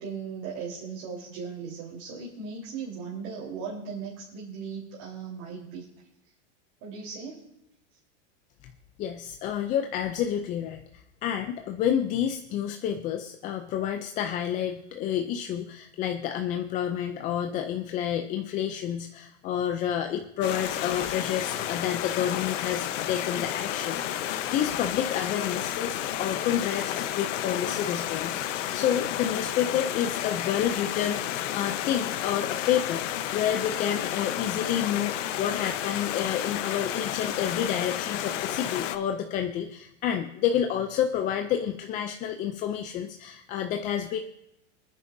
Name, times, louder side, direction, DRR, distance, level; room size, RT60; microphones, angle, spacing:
voice 1, 0.0-5.8 6.8-7.4, right 5 dB, 50° right, -5 dB, 3.8 m, -37 dB
voice 2, 9.0-44.2, left 9 dB, 20° left, 5 dB, 0.4 m, -29 dB
Stream, 20.4-39.0, left 11 dB, 80° left, 1.0 m, -31 dB
26.0 x 9.7 x 2.6 m, 0.84 s
supercardioid pair, 145°, 36 cm